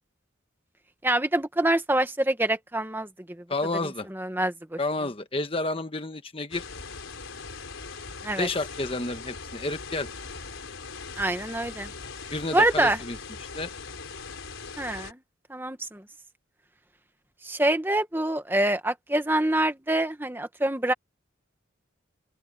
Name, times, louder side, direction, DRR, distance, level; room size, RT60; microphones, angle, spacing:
voice 1, 1.0-3.1 4.1-4.8 8.2-8.5 11.2-11.9 12.5-13.0 14.8-15.2 15.5-16.0 17.4-20.9, right 1 dB, 10° right, 1.2 m, -25 dB
voice 2, 3.5-4.1 4.8-6.7 8.4-10.1 12.3-13.2 13.5-13.7, left 2 dB, 25° left, 1.3 m, -30 dB
sound 1, 6.5-15.1, left 4 dB, 90° left, 4.5 m, -40 dB
open air
head